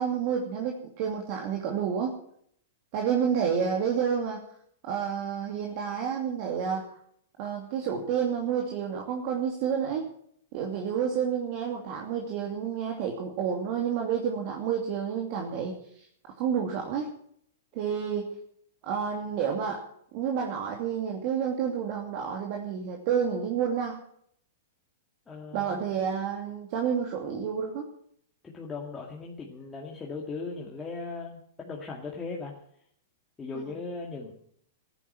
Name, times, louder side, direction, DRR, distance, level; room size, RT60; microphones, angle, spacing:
voice 1, 0.0-2.1 2.9-4.4 4.8-6.9 7.4-10.1 10.5-16.1 16.4-17.1 17.7-18.3 18.8-19.8 20.1-24.0 25.5-27.9, right 7 dB, 50° right, 1 dB, 2.7 m, -29 dB
voice 2, 25.3-25.8 28.4-32.5 33.4-34.3, left 4 dB, 15° left, -2 dB, 2.3 m, -38 dB
14.5 x 10.0 x 8.9 m, 0.66 s
hypercardioid pair, 130°, 0 cm